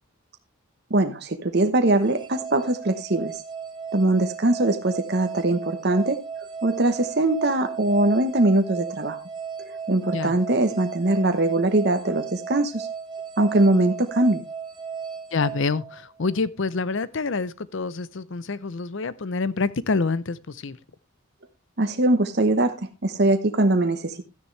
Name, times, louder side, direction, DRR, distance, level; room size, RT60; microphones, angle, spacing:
voice 1, 0.9-3.4 3.9-9.2 9.6-12.9 13.4-14.4 21.8-24.3, right 2 dB, 50° right, 1.0 m, -22 dB
sound 1, 2.0-16.3, right 6 dB, 20° right, 1.5 m, -36 dB
voice 2, 15.3-20.8, left 4 dB, 60° left, 0.6 m, -27 dB
12.5 x 9.8 x 3.2 m
head